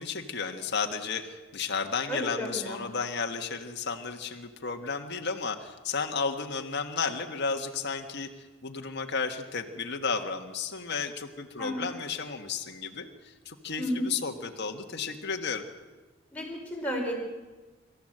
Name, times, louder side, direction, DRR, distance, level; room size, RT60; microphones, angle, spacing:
voice 1, 0.0-8.3 8.6-15.6, left 5 dB, 55° left, 4 dB, 1.6 m, -33 dB
voice 2, 2.1-2.8 11.6-11.8 13.8-14.0 16.3-17.1, left 1 dB, 5° left, -1 dB, 5.0 m, -32 dB
25.5 x 14.0 x 7.9 m, 1.2 s
head